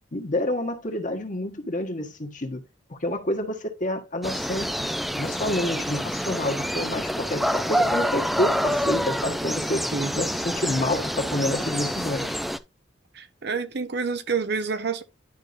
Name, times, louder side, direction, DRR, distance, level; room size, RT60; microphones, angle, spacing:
voice 1, 0.1-2.6 2.9-4.8 5.2-9.8 10.1-12.4, left 1 dB, 45° left, 1.4 m, -28 dB
sound 1, 4.2-12.6, equal, ahead, 0.4 m, -27 dB
voice 2, 13.1-15.0, right 5 dB, 65° right, 0.8 m, -28 dB
11.0 x 4.6 x 2.6 m
head